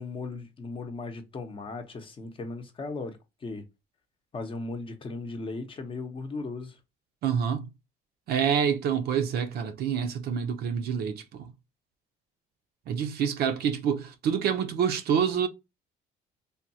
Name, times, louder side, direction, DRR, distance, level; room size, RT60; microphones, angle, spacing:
voice 1, 0.0-3.2 3.4-3.6 4.3-6.8, left 3 dB, 30° left, 0.7 m, -37 dB
voice 2, 7.2-7.7 8.3-11.5 12.9-15.5, right 7 dB, 70° right, 0.6 m, -27 dB
3.5 x 2.2 x 2.7 m
cardioid pair, 110°, 17 cm